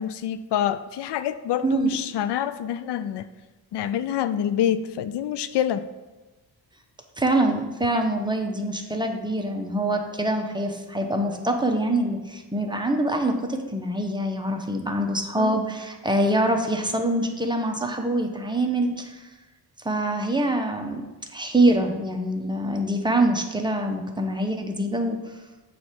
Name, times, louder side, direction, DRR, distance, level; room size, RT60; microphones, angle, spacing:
voice 1, 0.0-3.3 3.7-5.8 15.4-15.6, left 10 dB, 85° left, 12 dB, 0.5 m, -26 dB
voice 2, 1.6-2.0 7.2-19.2 19.8-21.0 21.3-25.2, right 1 dB, 10° right, 3 dB, 0.9 m, -24 dB
7.8 x 3.4 x 6.0 m, 1.2 s
cardioid pair, 95°, 40 cm